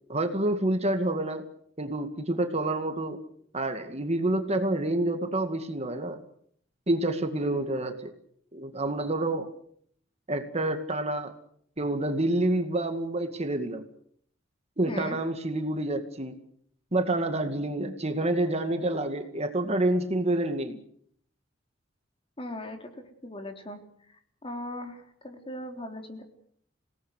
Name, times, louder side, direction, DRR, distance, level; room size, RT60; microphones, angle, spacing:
voice 1, 0.1-1.4 1.8-3.2 3.5-6.2 6.9-8.1 8.5-9.5 10.3-11.3 11.8-13.9 14.8-16.4 16.9-20.8, right 1 dB, 35° right, 6 dB, 2.1 m, -28 dB
voice 2, 14.9-15.2 22.4-22.9 23.2-23.8 24.1-26.2, left 1 dB, 30° left, 5 dB, 3.7 m, -39 dB
27.5 x 18.5 x 8.2 m, 0.67 s
head